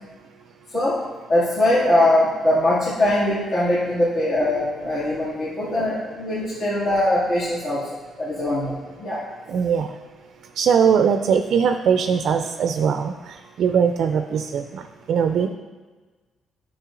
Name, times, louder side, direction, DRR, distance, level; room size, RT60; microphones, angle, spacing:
voice 1, 1.3-7.8 8.2-9.2, left 1 dB, 60° left, -9 dB, 2.1 m, -21 dB
voice 2, 9.5-9.9 10.6-13.1 13.6-14.8 15.1-15.5, right 7 dB, 70° right, 7 dB, 0.3 m, -20 dB
9.7 x 6.2 x 2.5 m, 1.3 s
cardioid pair, 90°, 0 cm